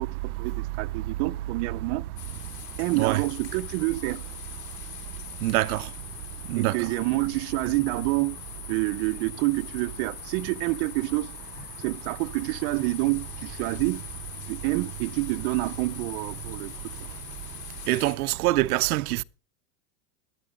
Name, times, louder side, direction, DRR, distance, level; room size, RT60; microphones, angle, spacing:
voice 1, 0.0-2.0 2.8-4.2 6.5-8.4 8.7-11.3 11.8-14.0 14.5-16.7 17.0-17.1, right 21 dB, 40° right, 0.6 m, -28 dB
sound 1, 2.2-18.2, left 9 dB, 40° left, 3.8 m, -42 dB
voice 2, 5.4-5.8 6.5-6.8 17.9-19.2, right 18 dB, 80° right, 0.7 m, -24 dB
17.0 x 10.5 x 3.8 m
supercardioid pair, 150°, 44 cm